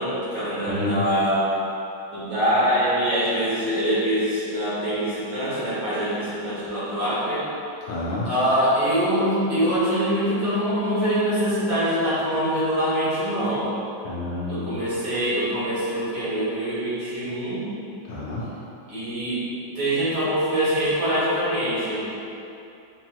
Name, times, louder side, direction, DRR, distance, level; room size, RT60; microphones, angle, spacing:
voice 1, 0.0-1.6 2.1-7.5 8.2-13.8 14.5-17.7 18.9-19.5 19.7-22.1, equal, 75° right, -11 dB, 2.4 m, -24 dB
voice 2, 0.7-1.0 7.9-8.3 14.0-14.7 18.1-18.4, left 2 dB, 70° left, -6 dB, 1.2 m, -29 dB
5.7 x 2.6 x 2.9 m, 2.8 s
omnidirectional pair, 2.4 m